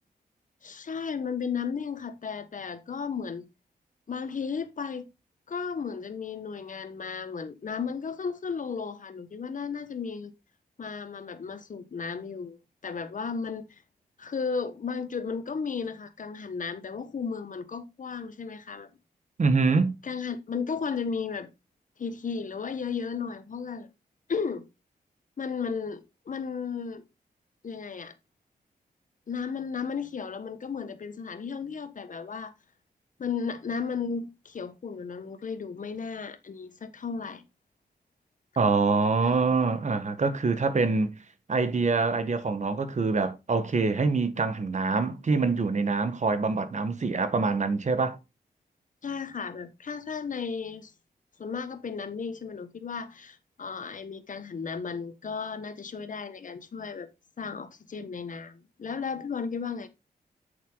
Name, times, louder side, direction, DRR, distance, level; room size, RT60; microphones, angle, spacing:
voice 1, 0.6-3.4 4.1-5.1 5.5-10.3 10.8-12.6 12.8-13.6 14.2-18.9 20.0-21.5 22.0-23.9 24.3-24.6 25.4-27.0 27.6-28.1 29.3-32.5 33.2-37.4 39.2-39.4 49.0-50.9 51.4-57.1 57.4-59.9, left 5 dB, 55° left, 1.4 m, -34 dB
voice 2, 19.4-19.9 38.6-41.1 41.5-48.2, right 4 dB, 50° right, 1.5 m, -25 dB
8.5 x 6.6 x 4.0 m
cardioid pair, 75°, 16 cm